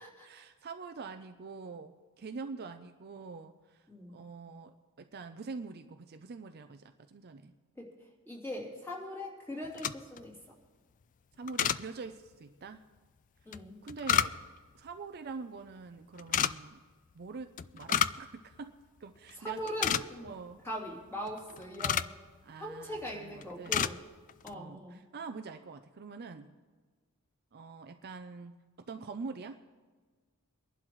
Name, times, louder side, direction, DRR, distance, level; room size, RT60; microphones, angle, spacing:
voice 1, 0.2-7.5 11.4-12.8 13.8-14.3 14.7-16.8 17.1-19.6 20.2-20.6 22.4-23.9 24.5-26.5 27.5-28.6 28.9-29.6, right 4 dB, 45° right, 8 dB, 0.5 m, -45 dB
voice 2, 3.9-4.2 7.8-7.9 8.2-10.4 13.4-13.8 19.4-20.3 20.6-22.1 22.6-24.0 24.4-25.0, equal, 10° left, -4 dB, 3.0 m, -40 dB
sound 1, 9.6-10.2 11.5-11.8 13.5-14.7 16.2-16.5 17.6-18.3 18.5-18.6 19.2-19.3 19.6-20.4 21.3-22.2 22.9-23.2 23.4-24.0 24.3-24.5, left 9 dB, 35° left, 0.3 m, -30 dB
23.5 x 11.5 x 3.1 m, 1.4 s
head